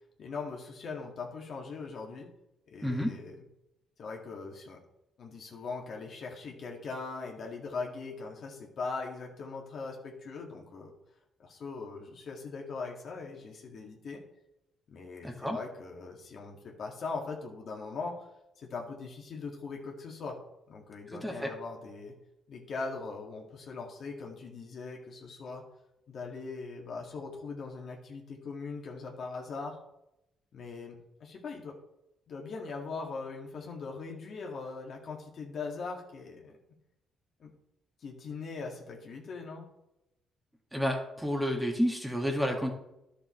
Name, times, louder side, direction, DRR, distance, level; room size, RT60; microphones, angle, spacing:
voice 1, 0.2-2.3 2.7-3.4 4.0-4.8 5.2-10.9 11.4-14.2 14.9-18.3 18.6-20.4 20.7-22.1 22.5-25.6 26.1-29.8 30.5-31.7 32.3-36.6 37.4-37.5 38.0-39.7, left 4 dB, 60° left, 0 dB, 2.0 m, -40 dB
voice 2, 2.8-3.1 15.2-15.6 21.1-21.5 40.7-42.7, equal, 5° right, 1 dB, 1.8 m, -30 dB
11.5 x 6.7 x 3.2 m, 0.86 s
cardioid pair, 90°, 0 cm